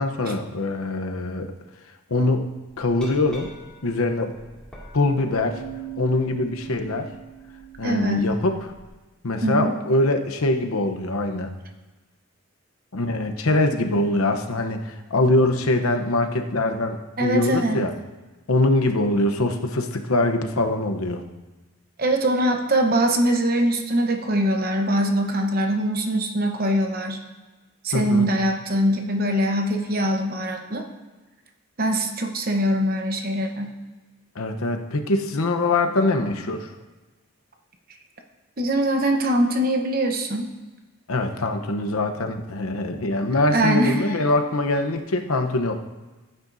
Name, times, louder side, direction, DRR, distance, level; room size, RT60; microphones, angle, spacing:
voice 1, 0.0-1.5 2.1-2.5 2.8-3.5 3.8-4.4 4.9-5.6 6.0-7.1 7.8-8.6 9.2-11.5 12.9-17.9 18.5-21.2 27.9-28.3 34.3-36.7 41.1-45.7, left 2 dB, 85° left, 5 dB, 0.9 m, -23 dB
Glass, 2.8-8.9, right 7 dB, 5° left, 2.2 m, -41 dB
voice 2, 7.8-8.3 9.4-9.8 17.2-17.9 22.0-27.2 27.8-30.9 31.8-33.8 38.6-40.5 43.5-44.0, right 1 dB, 45° right, 4 dB, 0.9 m, -22 dB
15.5 x 9.0 x 2.7 m, 1.2 s
head